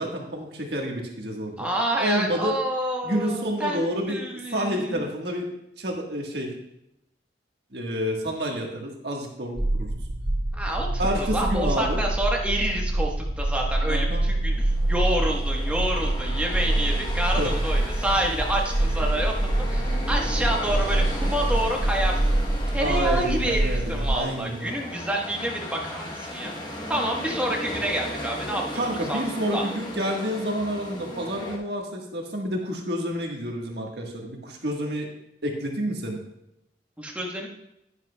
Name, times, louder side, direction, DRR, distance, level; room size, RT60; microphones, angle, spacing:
voice 1, 0.0-1.7 2.0-2.5 3.0-4.2 4.5-5.5 5.8-6.5 7.7-9.9 11.0-12.0 13.9-14.2 17.3-17.5 22.8-24.7 28.7-35.1 35.4-36.2, equal, 65° right, 1 dB, 1.5 m, -29 dB
voice 2, 1.6-5.1 10.5-29.2 29.5-29.6 37.0-37.5, right 1 dB, 5° right, -1 dB, 1.2 m, -28 dB
sound 1, 9.6-24.2, right 1 dB, 85° right, 2.1 m, -25 dB
sound 2, 14.3-31.6, left 1 dB, 25° left, 1.0 m, -36 dB
10.5 x 9.9 x 2.3 m, 0.82 s
head